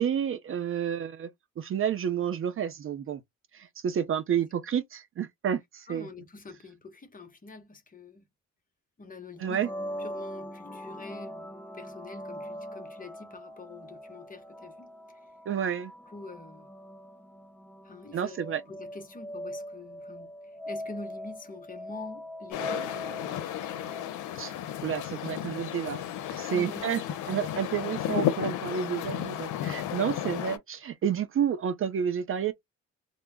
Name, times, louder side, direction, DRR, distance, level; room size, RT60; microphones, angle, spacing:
voice 1, 0.0-3.2 3.5-6.1 9.4-9.7 15.5-15.9 18.1-18.6 24.4-24.5 24.8-26.0 26.3-27.0 27.3-32.5, right 8 dB, 45° right, 0.5 m, -30 dB
voice 2, 5.9-8.2 9.0-9.6 10.0-15.2 16.1-16.7 17.8-18.4 18.7-23.4 26.5-26.9, left 3 dB, 30° left, 0.8 m, -45 dB
sound 1, 9.4-25.0, equal, 5° left, 0.5 m, -42 dB
sound 2, 22.5-30.6, left 11 dB, 85° left, 0.5 m, -33 dB
2.2 x 2.0 x 3.3 m
cardioid pair, 90°, 30 cm